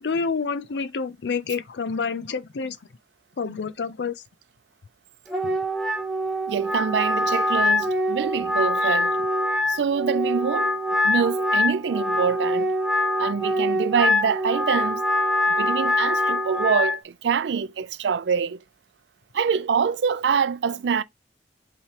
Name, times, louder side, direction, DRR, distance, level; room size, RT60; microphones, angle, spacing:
voice 1, 0.0-2.8 3.4-4.1 5.5-5.6 8.8-9.0, left 5 dB, 80° left, 0.5 m, -28 dB
Wind instrument woodwind instrument, 5.3-17.0, left 1 dB, ahead, 1.1 m, -24 dB
voice 2, 6.5-9.1 9.7-10.7 11.0-12.7 13.2-15.0 15.6-18.6 19.3-21.0, right 6 dB, 80° right, 0.4 m, -25 dB
5.6 x 3.2 x 2.9 m
head